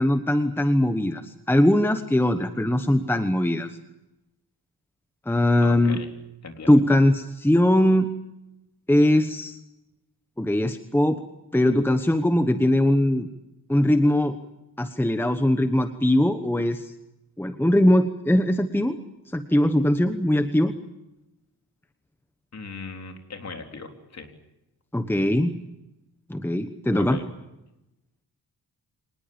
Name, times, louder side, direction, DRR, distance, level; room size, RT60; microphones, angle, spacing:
voice 1, 0.0-3.7 5.3-6.0 6.7-8.1 8.9-9.6 10.4-11.2 11.5-13.3 13.7-14.4 14.8-16.9 17.4-19.0 19.3-20.8 24.9-25.5 26.3-27.2, left 1 dB, 5° left, 8 dB, 1.1 m, -21 dB
voice 2, 5.6-6.1 6.4-6.7 22.5-24.3 26.9-27.3, left 4 dB, 40° left, 5 dB, 3.8 m, -38 dB
25.5 x 20.0 x 8.8 m, 0.91 s
wide cardioid pair, 140°, 39 cm